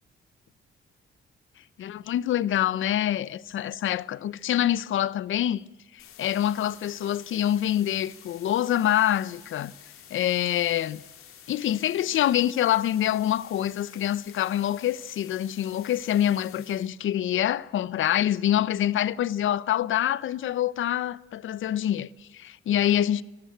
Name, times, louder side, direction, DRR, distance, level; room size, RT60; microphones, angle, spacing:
voice 1, 1.8-5.6 5.9-9.7 10.1-11.0 11.5-23.2, left 11 dB, 70° left, 0.7 m, -26 dB
sound 1, 6.0-16.9, left 9 dB, 90° left, 3.1 m, -50 dB
24.0 x 16.0 x 7.9 m
wide cardioid pair, 155°, 21 cm